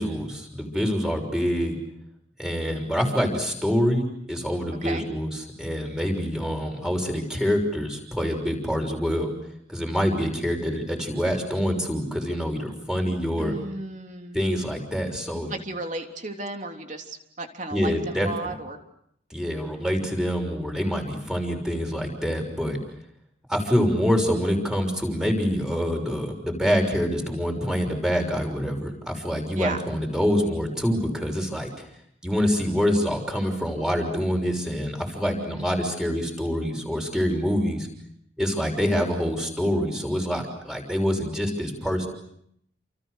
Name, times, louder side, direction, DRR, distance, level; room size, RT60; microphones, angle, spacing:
voice 1, 0.0-1.8 2.4-9.3 9.7-13.5 14.3-15.5 17.7-18.5 19.3-22.8 23.5-31.7 32.2-37.9 38.4-42.1, equal, 5° right, 3 dB, 6.1 m, -26 dB
voice 2, 13.4-14.4 15.5-18.8 29.6-29.8 35.2-35.9, right 2 dB, 40° right, 4 dB, 3.5 m, -34 dB
30.0 x 28.5 x 6.6 m, 0.72 s
head